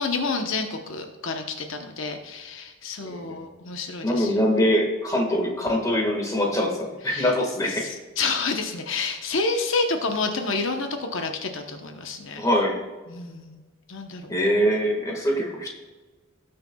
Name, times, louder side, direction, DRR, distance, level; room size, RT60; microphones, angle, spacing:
voice 1, 0.0-4.4 7.1-7.3 7.7-12.4 13.1-13.6 13.9-14.2, left 3 dB, 70° left, 4 dB, 0.9 m, -29 dB
voice 2, 3.0-3.4 4.0-7.9 12.4-12.8 14.3-15.7, equal, 15° left, 0 dB, 1.7 m, -23 dB
18.0 x 6.7 x 2.3 m, 1.3 s
head